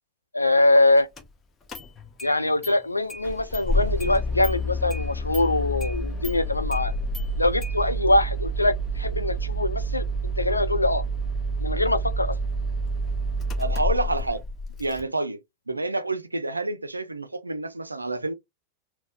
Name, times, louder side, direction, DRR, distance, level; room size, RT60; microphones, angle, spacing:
voice 1, 0.3-1.1 2.2-6.9 7.4-10.0 10.4-11.0 11.6-12.4, left 2 dB, 85° left, 0.4 m, -23 dB
Engine starting, 1.2-1.3 1.7-2.3 2.6-2.7 3.1-15.0, right 1 dB, 20° left, 0.8 m, -28 dB
voice 2, 13.6-14.4 14.8-15.4 15.7-18.3, right 2 dB, 80° right, 0.4 m, -28 dB
4.1 x 2.0 x 2.4 m
figure-of-eight pair, 90°, 0 cm